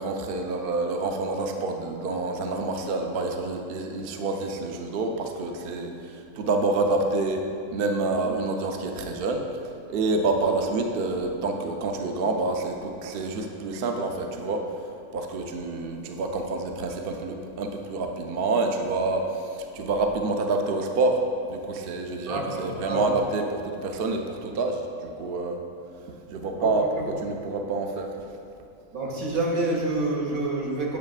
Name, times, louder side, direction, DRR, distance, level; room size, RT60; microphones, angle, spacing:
voice 1, 0.0-14.7 15.1-21.2 21.5-25.6 26.3-28.1, right 3 dB, 60° right, 3 dB, 0.6 m, -27 dB
voice 2, 22.3-23.0 26.5-26.7 27.0-27.1 28.9-31.0, right 2 dB, 80° right, -2 dB, 1.4 m, -28 dB
7.2 x 7.0 x 2.4 m, 2.5 s
omnidirectional pair, 1.5 m